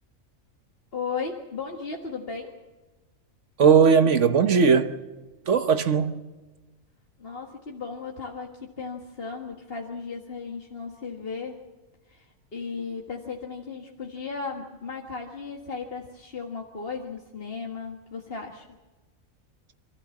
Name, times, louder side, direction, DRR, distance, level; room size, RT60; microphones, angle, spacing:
voice 1, 0.9-2.6 7.2-11.6 12.1-18.7, left 5 dB, 45° left, 1.8 m, -36 dB
voice 2, 3.6-4.9 5.5-6.2, right 6 dB, 65° right, 1.4 m, -18 dB
26.5 x 14.5 x 7.2 m
omnidirectional pair, 1.4 m